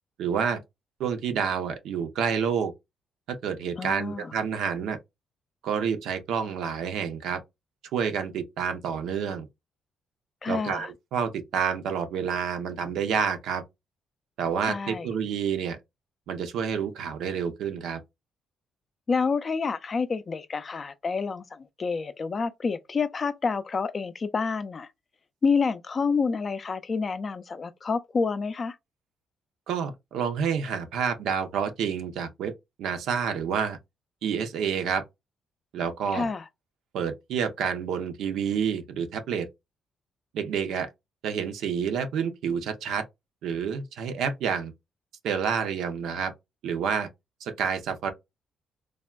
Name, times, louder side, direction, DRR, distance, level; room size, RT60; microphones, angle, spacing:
voice 1, 0.2-0.6 1.0-2.7 3.3-5.0 5.6-7.4 7.9-9.5 10.5-13.6 14.4-15.8 16.3-18.0 29.7-32.5 32.8-33.8 34.2-35.0 35.7-36.3 36.9-39.5 40.3-40.9 41.2-43.0 43.4-44.7 45.2-46.3 46.6-47.1 47.4-48.1, right 7 dB, 80° right, 0.5 m, -28 dB
voice 2, 3.8-4.3 10.4-10.9 14.7-15.1 19.1-24.9 25.4-28.8 36.1-36.4, left 5 dB, 40° left, 0.3 m, -28 dB
3.4 x 2.1 x 2.2 m
cardioid pair, 90°, 0 cm